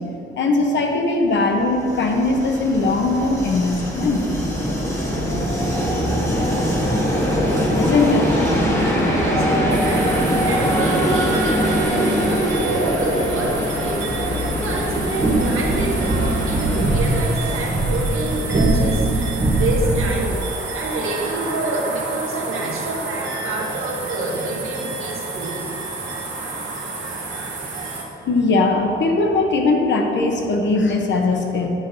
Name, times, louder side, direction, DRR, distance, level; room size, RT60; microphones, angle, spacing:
voice 1, 0.4-4.3 7.7-8.4 28.2-31.7, left 3 dB, 60° left, 2 dB, 0.9 m, -20 dB
Train, 1.6-19.3, equal, 15° left, 1.2 m, -23 dB
voice 2, 9.0-20.4 20.7-25.7, right 2 dB, 85° right, -1 dB, 1.3 m, -27 dB
sound 1, 9.7-28.0, right 3 dB, 65° right, 1.2 m, -30 dB
sound 2, 14.8-20.2, right 1 dB, 20° right, 0.8 m, -21 dB
9.3 x 7.9 x 2.7 m, 2.7 s
wide cardioid pair, 180°, 21 cm